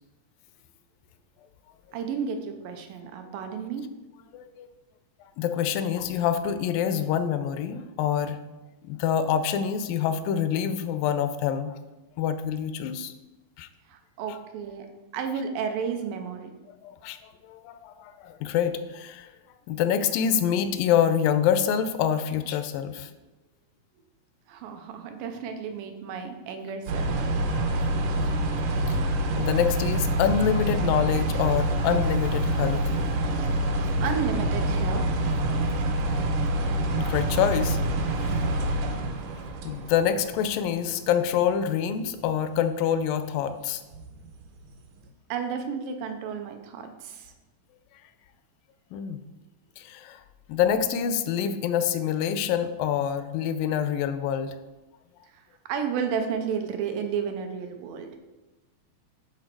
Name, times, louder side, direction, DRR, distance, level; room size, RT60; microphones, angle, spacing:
voice 1, 1.9-3.8 13.9-14.9 15.1-16.5 24.5-27.2 34.0-35.3 45.3-47.3 55.3-55.4 55.7-58.1, right 6 dB, 90° right, 5 dB, 2.4 m, -32 dB
voice 2, 4.3-4.7 5.4-8.4 8.9-11.7 12.2-13.1 13.6-13.7 14.3-14.4 16.8-19.3 19.7-23.1 28.9-29.0 29.4-33.0 37.0-37.8 38.2-38.4 39.7-43.8 48.9-49.2 49.8-50.2 50.5-54.5, left 8 dB, 85° left, 11 dB, 2.2 m, -26 dB
sound 1, 26.9-41.0 41.2-41.5 42.1-42.3 43.3-43.4 43.9-44.7 45.0-45.1, right 1 dB, 75° right, 2.2 m, -26 dB
9.9 x 4.0 x 4.6 m, 1.1 s
omnidirectional pair, 3.9 m